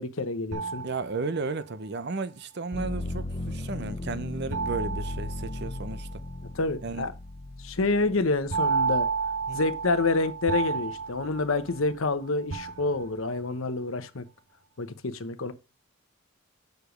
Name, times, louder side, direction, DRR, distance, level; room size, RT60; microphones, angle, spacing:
voice 1, 0.0-0.8 6.5-7.1 7.6-9.1 9.5-14.3 14.8-15.5, left 3 dB, 65° left, 0.9 m, -28 dB
sound 1, 0.5-1.7 4.5-6.1 8.5-12.1 12.5-13.4, right 5 dB, 80° right, 1.1 m, -31 dB
voice 2, 0.8-6.1 6.8-7.1 9.5-9.6, right 3 dB, 50° right, 0.6 m, -34 dB
sound 2, 2.7-10.5 11.0-11.8, left 2 dB, 25° left, 0.6 m, -37 dB
6.6 x 5.0 x 5.1 m
head